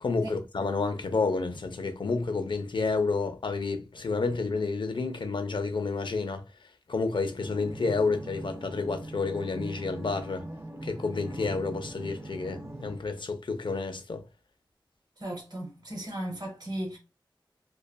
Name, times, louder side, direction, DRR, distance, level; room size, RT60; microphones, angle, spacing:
voice 1, 0.0-6.4 6.9-10.5 10.8-14.2, left 4 dB, 70° left, 0.5 m, -30 dB
sound 1, 7.4-13.0, right 1 dB, 30° right, 0.4 m, -41 dB
voice 2, 15.2-17.0, right 1 dB, 55° right, 1.1 m, -36 dB
2.5 x 2.3 x 2.2 m
wide cardioid pair, 75°, 9 cm